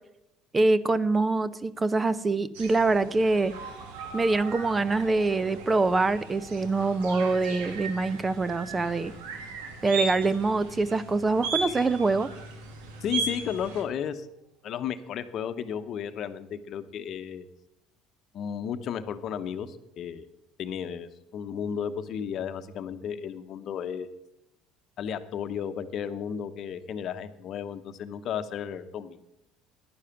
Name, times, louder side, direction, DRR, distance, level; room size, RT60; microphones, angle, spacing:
voice 1, 0.5-3.5 4.1-9.1 9.8-12.3, right 3 dB, 20° right, 17 dB, 0.6 m, -24 dB
sound 1, 2.5-13.8, right 4 dB, 90° right, 1.7 m, -37 dB
sound 2, 3.1-14.0, right 4 dB, 60° right, 2.6 m, -51 dB
voice 2, 13.0-14.3 14.6-17.5 18.3-20.3 20.6-24.1 25.0-29.2, left 8 dB, 55° left, 10 dB, 0.9 m, -33 dB
10.5 x 9.9 x 5.8 m, 0.87 s
supercardioid pair, 100°, 0 cm